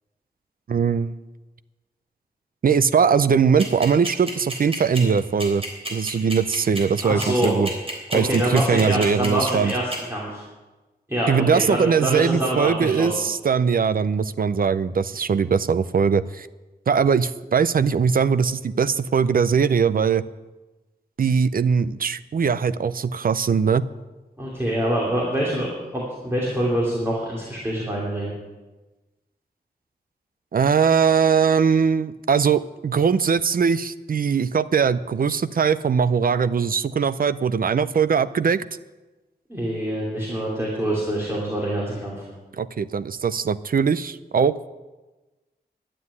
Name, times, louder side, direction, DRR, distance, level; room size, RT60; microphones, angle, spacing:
voice 1, 0.7-1.1 2.6-5.6 5.9-7.7 8.1-9.7 11.3-16.5 16.9-20.2 21.2-23.9 30.5-38.6 42.6-44.6, right 6 dB, 55° right, 14 dB, 0.5 m, -21 dB
sound 1, 3.6-10.0, right 1 dB, 35° right, 3.5 m, -30 dB
voice 2, 7.0-7.6 8.1-10.4 11.1-13.3 24.4-28.3 39.5-42.2, right 1 dB, 15° right, -5 dB, 2.8 m, -25 dB
11.5 x 7.7 x 9.6 m, 1.2 s
wide cardioid pair, 115°, 17 cm